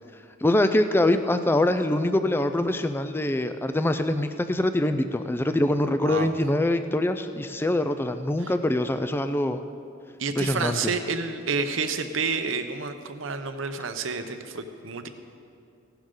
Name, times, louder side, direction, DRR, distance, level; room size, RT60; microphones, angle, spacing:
voice 1, 0.4-9.6 10.4-10.9, left 1 dB, 10° left, 9 dB, 0.4 m, -24 dB
voice 2, 6.0-6.3 8.4-8.5 10.2-15.1, right 4 dB, 70° right, 8 dB, 0.8 m, -29 dB
16.5 x 11.5 x 3.8 m, 2.5 s
head